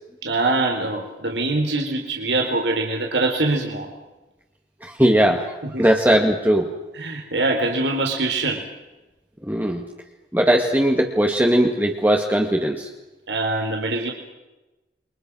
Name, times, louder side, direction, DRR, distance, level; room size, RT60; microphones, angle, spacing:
voice 1, 0.2-3.9 5.6-5.9 7.0-8.7 13.3-14.1, right 2 dB, 80° right, 2 dB, 4.1 m, -23 dB
voice 2, 4.8-5.4 5.8-6.7 9.4-9.8 10.3-12.9, right 1 dB, 10° right, 1 dB, 1.9 m, -19 dB
29.5 x 24.5 x 6.3 m, 1.0 s
head